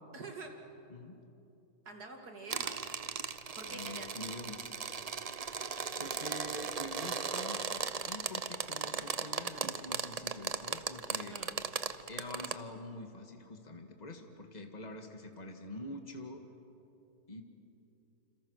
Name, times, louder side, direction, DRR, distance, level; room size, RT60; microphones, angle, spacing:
voice 1, 0.1-0.5 1.9-2.9 3.6-4.2 11.3-11.6, right 3 dB, 90° right, 3 dB, 2.9 m, -46 dB
sound 1, 2.5-12.5, right 5 dB, 40° right, 0.5 m, -37 dB
voice 2, 3.7-4.7 6.0-7.7 8.1-11.4 12.1-16.4 17.3-17.4, left 1 dB, 25° left, 5 dB, 1.9 m, -46 dB
28.0 x 27.0 x 6.5 m, 2.9 s
omnidirectional pair, 1.6 m